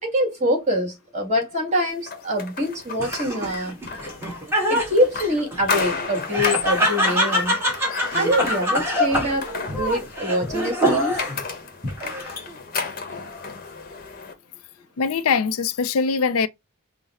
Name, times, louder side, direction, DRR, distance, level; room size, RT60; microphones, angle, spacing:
voice 1, 0.0-3.8 4.7-7.6 8.1-9.5 9.8-11.2, equal, 30° right, 1.6 m, -24 dB
sound 1, 2.1-14.3, left 5 dB, 40° left, 0.9 m, -33 dB
Laughter, 3.0-11.4 11.8-12.5, equal, 10° right, 1.2 m, -25 dB
voice 2, 15.0-16.5, left 5 dB, 70° left, 0.4 m, -22 dB
3.9 x 2.0 x 4.1 m
head